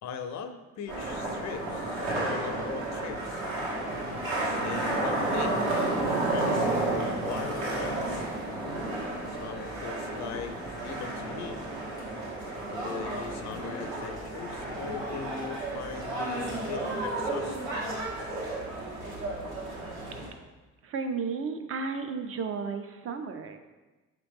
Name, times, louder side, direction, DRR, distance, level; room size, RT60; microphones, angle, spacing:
voice 1, 0.0-3.5 4.3-6.0 6.3-8.3 9.3-11.6 12.7-17.7, left 6 dB, 65° left, 8 dB, 0.5 m, -40 dB
sound 1, 0.9-20.3, right 2 dB, 75° right, 1.4 m, -32 dB
voice 2, 20.8-23.6, right 5 dB, 50° right, 7 dB, 0.4 m, -33 dB
4.7 x 2.9 x 3.5 m, 1.2 s
cardioid pair, 90°, 30 cm